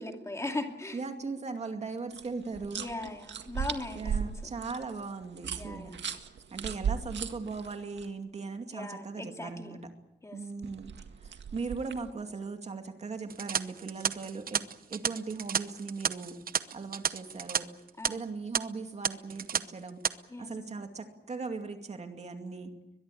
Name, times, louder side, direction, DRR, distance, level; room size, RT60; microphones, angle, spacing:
voice 1, 0.0-1.0 2.8-4.4 5.6-6.0 8.7-9.8 10.2-10.4 18.0-18.3 20.3-20.5, left 2 dB, 15° left, 4 dB, 2.4 m, -39 dB
voice 2, 0.9-2.8 3.9-5.9 6.5-9.8 10.3-14.6 14.9-16.4 16.7-17.7 18.1-20.0 20.4-22.7, right 4 dB, 40° right, 5 dB, 2.4 m, -38 dB
sound 1, 2.1-8.1 10.6-12.1, right 7 dB, 85° right, 1.9 m, -37 dB
sound 2, 13.3-17.6 17.9-18.1 18.5-18.6 19.0-19.6 19.9-20.1, right 7 dB, 55° right, 0.9 m, -31 dB
22.5 x 22.0 x 8.6 m, 0.90 s
wide cardioid pair, 175°, 18 cm